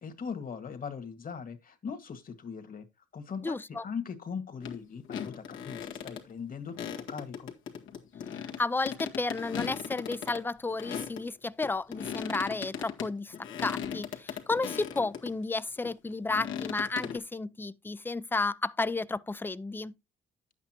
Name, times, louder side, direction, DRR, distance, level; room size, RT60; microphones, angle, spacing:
voice 1, 0.0-2.9 3.1-7.5, left 6 dB, 45° left, 1.9 m, -40 dB
voice 2, 3.4-3.8 8.3-19.9, left 3 dB, 10° left, 0.4 m, -32 dB
sound 1, 4.6-4.8 5.1-6.2 6.7-11.2 11.6-15.3 15.8-17.2, left 8 dB, 80° left, 1.8 m, -38 dB
10.0 x 8.3 x 3.0 m
cardioid pair, 90°, 20 cm